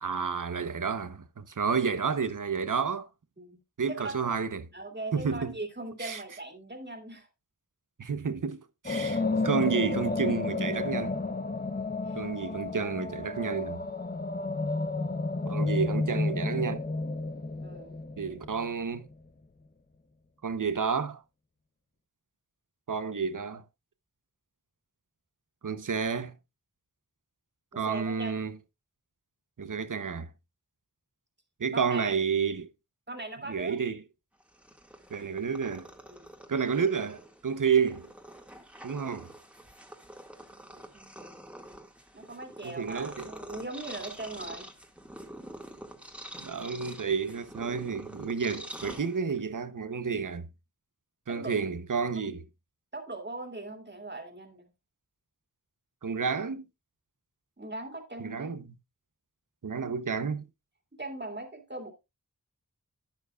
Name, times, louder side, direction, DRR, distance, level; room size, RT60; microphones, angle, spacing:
voice 1, 0.0-3.1 3.8-4.7 5.1-5.5 6.0-6.2 8.0-11.2 12.1-13.9 15.5-16.8 18.2-19.1 20.4-21.2 22.9-23.6 25.6-26.4 27.8-28.6 29.6-30.3 31.6-32.7 33.5-34.0 35.1-35.9 36.5-38.1 38.8-39.3 42.6-43.3 46.4-50.5 51.3-52.4 56.0-56.7 58.2-58.7 59.6-60.5, right 6 dB, 70° right, 0.9 m, -30 dB
voice 2, 4.7-7.3 12.1-12.2 17.6-18.0 27.7-28.4 31.7-32.2 33.1-33.8 36.1-36.3 37.5-37.6 40.5-41.5 42.1-44.7 51.3-51.5 52.9-54.7 57.6-58.6 61.0-61.9, right 2 dB, 35° right, 2.3 m, -40 dB
sound 1, 8.9-19.0, left 3 dB, 30° left, 0.8 m, -31 dB
Purr, 34.4-49.6, right 1 dB, 5° right, 1.9 m, -46 dB
11.5 x 9.1 x 2.4 m
wide cardioid pair, 45°, 32 cm